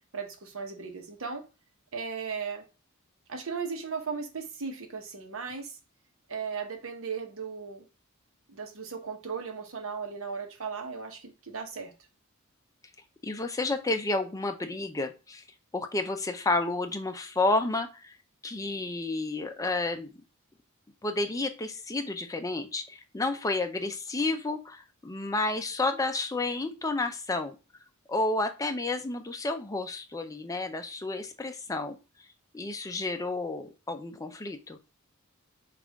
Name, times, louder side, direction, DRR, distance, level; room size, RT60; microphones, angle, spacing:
voice 1, 0.1-1.4 1.9-2.6 3.3-5.8 6.3-7.8 8.5-11.9, right 5 dB, 65° right, 0.9 m, -36 dB
voice 2, 13.2-15.4 15.7-18.1 18.4-20.1 21.0-27.6 28.1-32.0 32.5-34.8, left 2 dB, 15° left, 0.5 m, -31 dB
5.4 x 2.5 x 3.4 m
head